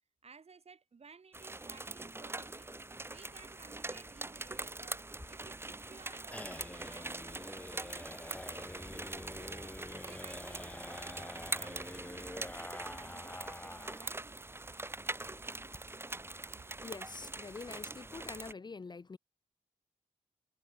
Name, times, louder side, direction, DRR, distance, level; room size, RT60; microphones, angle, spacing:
voice 1, 0.2-2.7 3.1-9.0 9.3-14.2, right 5 dB, 45° right, 2.4 m, -58 dB
sound 1, 1.3-18.5, right 2 dB, 15° right, 1.0 m, -43 dB
sound 2, 5.1-14.2 14.5-14.6 14.9-15.0 15.3-15.8, left 1 dB, 10° left, 1.0 m, -47 dB
voice 2, 16.8-19.2, left 4 dB, 30° left, 0.6 m, -45 dB
wide cardioid pair, 170°, 14 cm